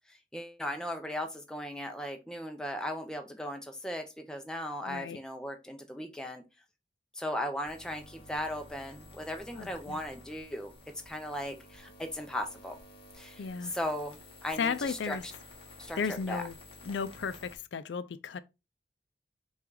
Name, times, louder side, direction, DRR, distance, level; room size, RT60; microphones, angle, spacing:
voice 1, 0.1-6.4 7.1-10.7 11.1-12.8 13.1-13.4 13.7-15.2 15.8-16.4, left 1 dB, 5° left, 0.6 m, -37 dB
voice 2, 4.9-5.2 9.6-10.0 13.4-13.7 14.6-15.2 16.0-16.5 16.8-18.4, left 5 dB, 90° left, 0.4 m, -34 dB
sound 1, 7.7-17.6, left 2 dB, 30° left, 0.9 m, -52 dB
5.6 x 2.4 x 3.8 m
head